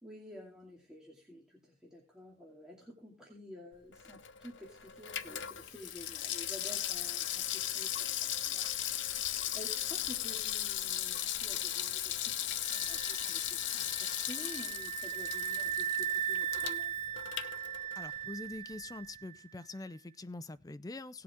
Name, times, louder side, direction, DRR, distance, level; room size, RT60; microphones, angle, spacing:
voice 1, 0.0-17.0, equal, 5° right, 2.5 m, -51 dB
Water tap faucet / Sink (filling or washing), 3.9-18.2 18.5-18.6, left 11 dB, 80° left, 0.9 m, -37 dB
sound 1, 12.6-19.4, right 9 dB, 35° right, 0.5 m, -38 dB
voice 2, 18.0-21.2, left 2 dB, 20° left, 0.4 m, -44 dB
17.5 x 7.7 x 3.6 m
head